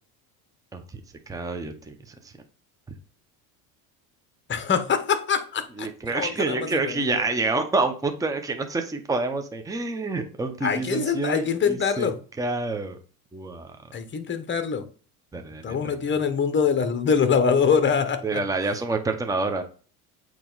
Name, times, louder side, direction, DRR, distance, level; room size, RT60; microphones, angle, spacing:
voice 1, 1.3-2.1 5.8-12.1 12.4-13.0 13.3-13.7 15.3-16.0 18.2-19.6, right 3 dB, 10° right, 0.8 m, -28 dB
voice 2, 4.5-7.2 10.6-12.2 13.9-14.9 15.3-18.4, left 6 dB, 25° left, 1.0 m, -24 dB
8.3 x 3.1 x 3.9 m
supercardioid pair, 100°, 45 cm